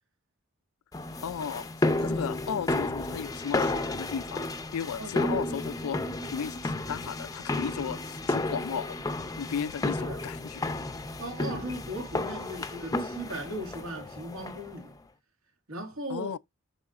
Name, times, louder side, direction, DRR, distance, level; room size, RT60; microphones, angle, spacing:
sound 1, 0.9-14.8, left 2 dB, 15° left, 0.5 m, -32 dB
voice 1, 1.2-1.7 2.0-6.0 6.3-8.9 9.4-10.6 12.9-13.0 16.1-16.4, left 7 dB, 85° left, 0.4 m, -35 dB
voice 2, 5.0-5.4 6.2-6.3 10.0-10.2 11.2-14.9 15.7-16.3, right 1 dB, 80° right, 2.1 m, -38 dB
7.9 x 5.6 x 2.5 m
head